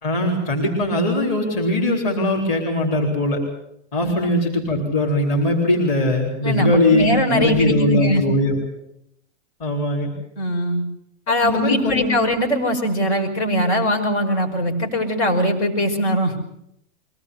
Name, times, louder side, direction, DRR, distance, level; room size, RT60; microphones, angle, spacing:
voice 1, 0.0-3.4 3.9-8.5 9.6-10.1 11.4-12.2, left 1 dB, 30° left, 1 dB, 3.9 m, -20 dB
voice 2, 6.4-8.2 10.4-10.8 11.3-16.3, equal, 65° left, 4 dB, 5.5 m, -21 dB
23.0 x 18.5 x 8.1 m, 0.76 s
supercardioid pair, 175°, 36 cm